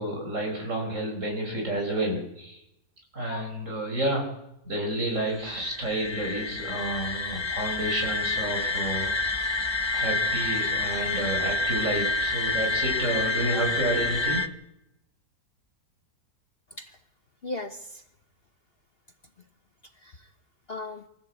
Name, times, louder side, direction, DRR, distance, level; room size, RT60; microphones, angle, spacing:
voice 1, 0.0-2.6 3.1-4.3 4.6-9.1 9.9-14.4, right 1 dB, 45° right, 1 dB, 5.4 m, -30 dB
sound 1, 5.3-14.5, left 2 dB, 20° left, 0.8 m, -28 dB
voice 2, 16.7-17.0 17.4-18.1 19.4-19.5 19.8-20.3 20.7-21.1, left 2 dB, 40° left, 8 dB, 1.2 m, -38 dB
23.5 x 14.5 x 8.2 m, 0.82 s
omnidirectional pair, 1.8 m